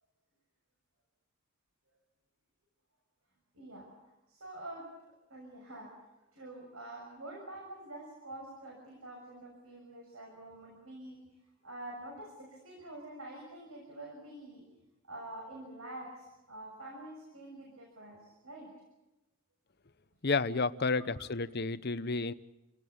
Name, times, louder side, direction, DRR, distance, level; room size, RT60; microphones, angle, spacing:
voice 1, 3.5-3.9 4.3-4.9 5.3-5.9 6.3-11.2 11.6-14.7 15.0-18.7, right 1 dB, 80° right, 0 dB, 6.6 m, -47 dB
voice 2, 20.2-22.3, left 4 dB, 50° left, 14 dB, 0.9 m, -31 dB
28.5 x 17.5 x 8.7 m, 1.0 s
head